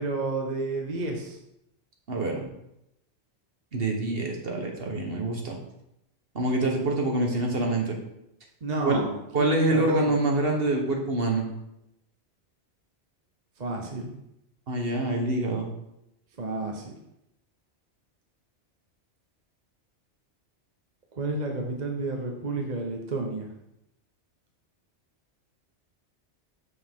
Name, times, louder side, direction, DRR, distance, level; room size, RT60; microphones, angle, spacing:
voice 1, 0.0-1.4 8.6-10.2 13.6-14.1 16.4-16.9 21.1-23.5, right 2 dB, 40° right, 1 dB, 1.0 m, -31 dB
voice 2, 2.1-2.4 3.7-5.6 6.3-8.0 8.8-9.0 9.3-11.5 14.7-15.7, right 2 dB, 55° right, 1 dB, 1.5 m, -26 dB
7.1 x 6.8 x 3.7 m, 0.84 s
omnidirectional pair, 1.2 m